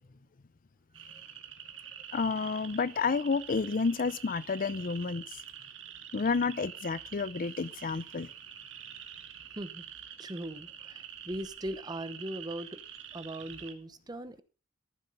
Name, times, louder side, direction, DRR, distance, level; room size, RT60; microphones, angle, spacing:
sound 1, 0.9-13.7, right 9 dB, 90° right, 1.7 m, -47 dB
voice 1, 2.1-5.4 6.1-8.3, left 4 dB, 45° left, 0.5 m, -30 dB
voice 2, 10.2-12.8 13.1-14.4, right 1 dB, 20° right, 0.9 m, -39 dB
14.0 x 7.3 x 5.4 m
head